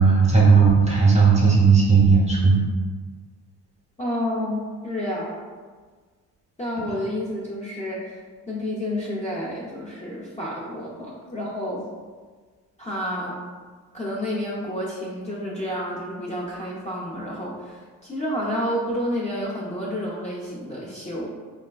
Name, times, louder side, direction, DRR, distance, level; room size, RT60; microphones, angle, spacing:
voice 1, 0.0-2.6, right 5 dB, 15° right, -4 dB, 0.8 m, -16 dB
voice 2, 4.0-5.4 6.6-8.2 8.5-11.9 12.8-13.4 13.9-21.3, equal, 20° left, -6 dB, 0.6 m, -30 dB
3.3 x 2.1 x 2.3 m, 1.5 s
supercardioid pair, 55°, 38 cm